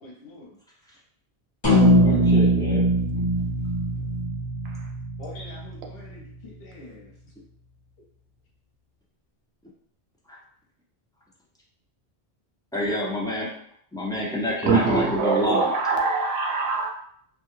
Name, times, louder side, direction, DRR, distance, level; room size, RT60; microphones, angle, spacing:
voice 1, 0.0-0.5 5.2-7.1, left 2 dB, 70° left, -2 dB, 0.9 m, -44 dB
sound 1, 1.6-6.1, equal, 30° left, 0.8 m, -21 dB
voice 2, 2.0-2.8 12.7-13.5 13.9-15.7, left 1 dB, 5° left, -6 dB, 0.3 m, -27 dB
voice 3, 14.7-16.9, right 4 dB, 80° right, 1 dB, 0.8 m, -23 dB
2.2 x 2.1 x 3.0 m, 0.64 s
omnidirectional pair, 1.0 m